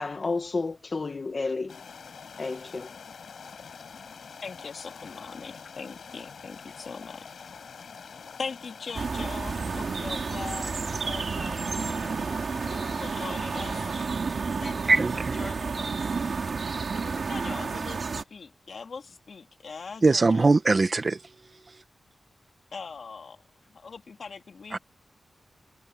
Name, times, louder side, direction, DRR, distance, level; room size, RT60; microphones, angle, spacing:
voice 1, 0.0-1.8 2.4-2.9, left 3 dB, 40° left, 1.9 m, -31 dB
sound 1, 1.7-14.1, left 6 dB, 75° left, 5.8 m, -45 dB
voice 2, 4.4-7.4 8.4-11.7 12.7-13.8 14.6-16.4 16.9-20.5 22.7-23.4 23.7-24.8, left 5 dB, 60° left, 2.7 m, -41 dB
sound 2, 8.9-18.2, right 4 dB, 55° right, 3.2 m, -31 dB
voice 3, 14.9-15.4 20.0-21.2 24.7-24.8, right 3 dB, 35° right, 1.4 m, -21 dB
wide cardioid pair, 140°, 0 cm